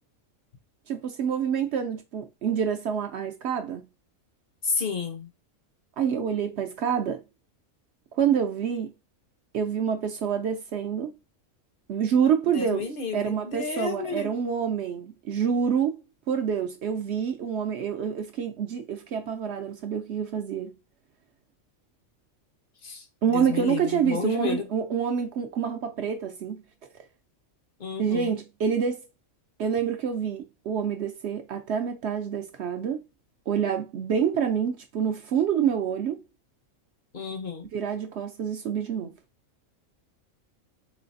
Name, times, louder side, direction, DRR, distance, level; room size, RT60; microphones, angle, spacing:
voice 1, 0.9-3.9 6.0-7.2 8.2-8.9 9.5-11.1 11.9-16.0 16.3-20.8 23.2-26.6 28.0-29.0 29.6-33.0 33.5-36.2 37.7-39.1, right 7 dB, 65° right, 0.7 m, -27 dB
voice 2, 4.6-5.3 12.5-14.4 22.8-23.0 23.3-24.7 27.8-28.3 37.1-37.7, left 5 dB, 50° left, 0.8 m, -31 dB
3.8 x 3.2 x 2.5 m
omnidirectional pair, 1.4 m